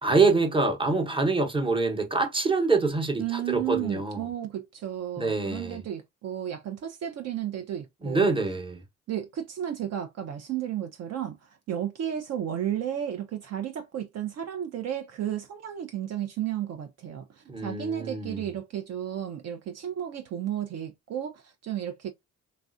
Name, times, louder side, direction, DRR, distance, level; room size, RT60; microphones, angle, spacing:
voice 1, 0.0-4.2 5.2-5.8 8.0-8.8 17.5-18.4, right 3 dB, 15° right, 0.9 m, -25 dB
voice 2, 3.2-8.3 9.1-22.1, right 10 dB, 60° right, 0.5 m, -33 dB
3.1 x 2.3 x 2.4 m
cardioid pair, 90°, 30 cm